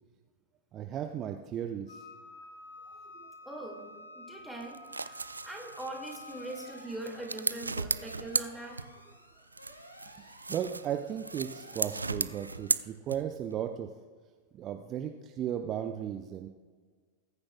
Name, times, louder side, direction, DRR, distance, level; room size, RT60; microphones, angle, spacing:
voice 1, 0.7-2.0 3.2-3.3 10.1-13.9 14.5-16.5, right 9 dB, 30° right, 6 dB, 0.6 m, -36 dB
Wind instrument woodwind instrument, 1.9-7.1, left 2 dB, 70° left, 2.1 m, -50 dB
voice 2, 3.4-8.8, right 2 dB, ahead, 0 dB, 2.3 m, -42 dB
sound 1, 4.6-9.2 9.5-13.5, right 3 dB, 80° right, 0.3 m, -36 dB
sound 2, 6.2-12.9, equal, 85° left, 1.3 m, -55 dB
20.0 x 9.7 x 2.4 m, 1.5 s
figure-of-eight pair, 90°, 0 cm